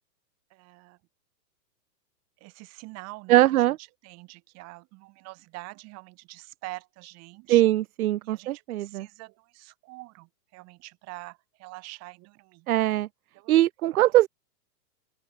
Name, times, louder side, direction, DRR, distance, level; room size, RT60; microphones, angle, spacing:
voice 1, 0.5-1.0 2.4-3.4 4.0-7.6 8.2-12.7 13.4-13.6, right 24 dB, 30° right, 7.1 m, -45 dB
voice 2, 3.3-3.8 7.5-9.1 12.7-13.1 13.5-14.3, right 15 dB, 60° right, 0.8 m, -21 dB
open air
hypercardioid pair, 150°, 50 cm